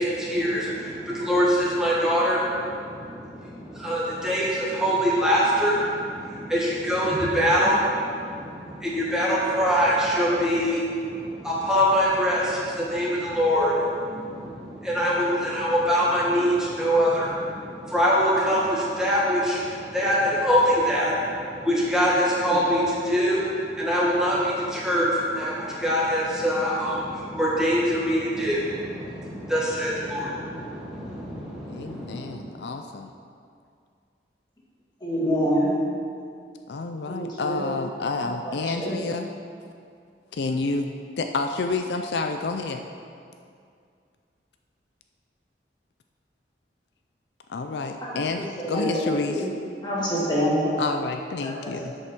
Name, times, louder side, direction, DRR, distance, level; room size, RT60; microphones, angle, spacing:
voice 1, 0.0-32.3, equal, 5° right, -7 dB, 1.5 m, -24 dB
voice 2, 31.6-33.1 36.7-39.3 40.3-42.8 47.5-49.4 50.8-51.9, left 3 dB, 75° left, 5 dB, 0.4 m, -29 dB
voice 3, 35.0-35.7 37.1-37.7 38.2-39.0 48.0-49.5 49.8-50.8 51.4-52.0, equal, 25° left, -6 dB, 2.0 m, -27 dB
8.3 x 5.4 x 6.1 m, 2.3 s
head